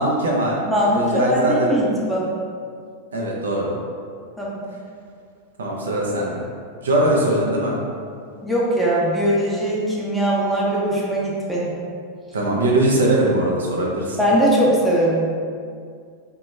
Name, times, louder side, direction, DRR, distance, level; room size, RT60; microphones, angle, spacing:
voice 1, 0.0-0.6 0.9-1.7 3.1-3.7 5.6-6.4 6.8-7.8 12.3-14.2, right 1 dB, 65° right, -2 dB, 0.5 m, -20 dB
voice 2, 0.7-2.3 4.4-4.6 8.4-11.7 14.2-15.3, right 1 dB, ahead, -6 dB, 0.6 m, -20 dB
2.9 x 2.2 x 3.1 m, 2.2 s
figure-of-eight pair, 90°, 0 cm